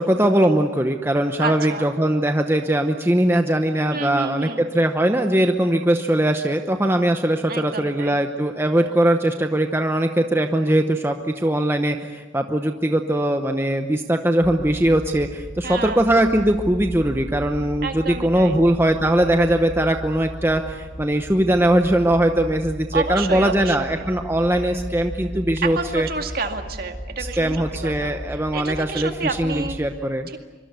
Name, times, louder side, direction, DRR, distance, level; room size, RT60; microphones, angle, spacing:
voice 1, 0.0-26.1 27.2-30.3, right 1 dB, 10° right, 5 dB, 0.9 m, -20 dB
voice 2, 1.4-1.9 3.9-4.6 7.5-8.2 15.6-16.0 17.8-18.6 22.9-24.1 25.6-28.2 28.5-29.8 30.3-30.4, right 3 dB, 50° right, 5 dB, 2.2 m, -29 dB
sound 1, 14.4-29.8, equal, 10° left, 3.5 m, -36 dB
24.5 x 24.0 x 8.2 m, 1.3 s
head